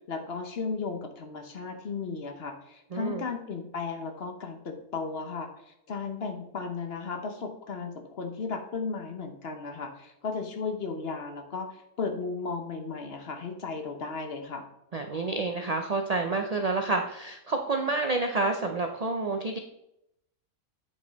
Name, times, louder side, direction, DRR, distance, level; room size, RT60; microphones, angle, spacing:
voice 1, 0.1-14.6, left 4 dB, 50° left, 5 dB, 1.0 m, -35 dB
voice 2, 2.9-3.2 14.9-19.6, right 3 dB, 70° right, 4 dB, 0.3 m, -29 dB
8.8 x 5.2 x 4.0 m, 0.81 s
omnidirectional pair, 1.6 m